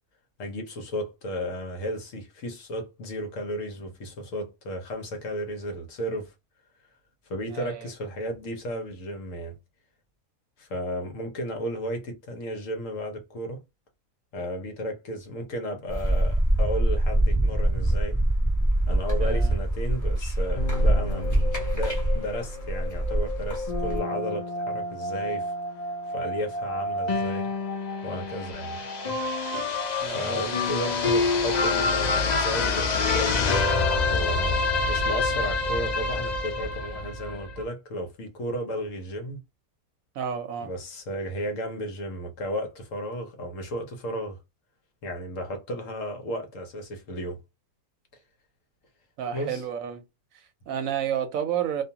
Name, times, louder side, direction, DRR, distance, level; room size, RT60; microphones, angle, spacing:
voice 1, 0.4-6.3 7.3-9.6 10.6-13.6 14.3-18.2 18.9-27.5 28.0-28.8 30.0-33.5 34.1-34.6 34.8-39.4 40.6-44.4 45.0-47.4 49.3-49.6, equal, 65° left, 1.1 m, -34 dB
voice 2, 7.5-7.9 19.2-19.6 30.0-31.1 40.1-40.7 49.2-50.0 50.3-51.8, right 8 dB, 70° right, 0.9 m, -31 dB
sound 1, 15.9-24.0, right 1 dB, 15° left, 0.7 m, -24 dB
sound 2, 20.5-37.6, left 3 dB, 85° left, 0.3 m, -28 dB
2.5 x 2.4 x 2.7 m
omnidirectional pair, 1.5 m